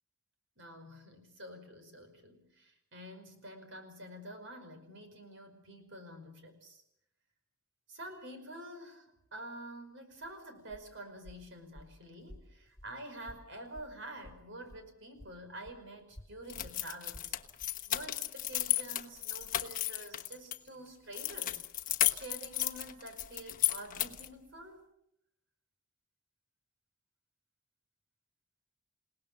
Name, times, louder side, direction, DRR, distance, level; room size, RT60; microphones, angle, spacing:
voice 1, 0.6-6.8 7.9-17.4 17.9-21.6 22.1-24.9, right 1 dB, 60° right, 6 dB, 5.3 m, -48 dB
Walk footsteps, 10.1-14.9 15.2-17.8, left 1 dB, 15° left, 3.9 m, -55 dB
sound 1, 16.5-20.6 21.1-24.3, left 13 dB, 40° left, 1.1 m, -34 dB
29.0 x 18.0 x 6.8 m, 0.77 s
head